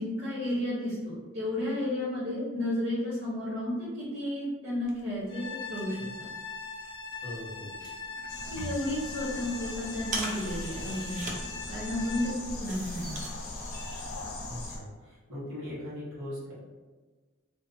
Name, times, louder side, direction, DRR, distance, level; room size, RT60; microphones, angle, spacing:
voice 1, 0.0-6.3 8.5-13.1, left 1 dB, 60° right, -8 dB, 0.8 m, -32 dB
sound 1, 4.8-14.2, right 2 dB, 35° right, 0.3 m, -44 dB
sound 2, 5.3-12.3, left 4 dB, 45° left, 0.6 m, -41 dB
voice 2, 7.2-7.7 14.4-16.5, left 1 dB, 80° right, -8 dB, 1.4 m, -40 dB
sound 3, 8.3-14.8, left 2 dB, 85° left, 0.5 m, -39 dB
2.7 x 2.1 x 2.7 m, 1.3 s
head